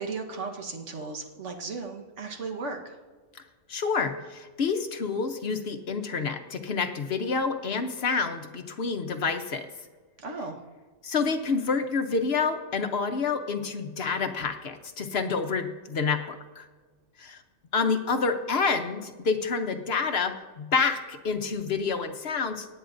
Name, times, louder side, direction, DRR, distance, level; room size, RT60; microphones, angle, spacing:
voice 1, 0.0-3.0 10.2-10.6, right 4 dB, 65° right, 3 dB, 1.5 m, -35 dB
voice 2, 3.7-9.7 11.0-16.7 17.2-17.4 17.7-22.7, left 5 dB, 55° left, 7 dB, 0.9 m, -28 dB
18.0 x 10.0 x 2.5 m, 1.4 s
omnidirectional pair, 1.4 m